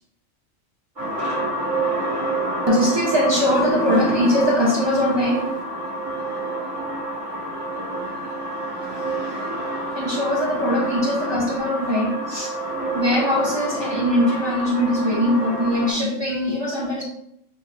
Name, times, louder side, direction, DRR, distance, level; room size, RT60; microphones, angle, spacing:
sound 1, 1.0-15.9, right 2 dB, 90° right, 1.7 m, -27 dB
voice 1, 2.7-5.5 10.0-12.5 12.9-17.0, left 1 dB, 30° right, -3 dB, 0.5 m, -21 dB
5.6 x 2.1 x 2.6 m, 0.75 s
omnidirectional pair, 1.3 m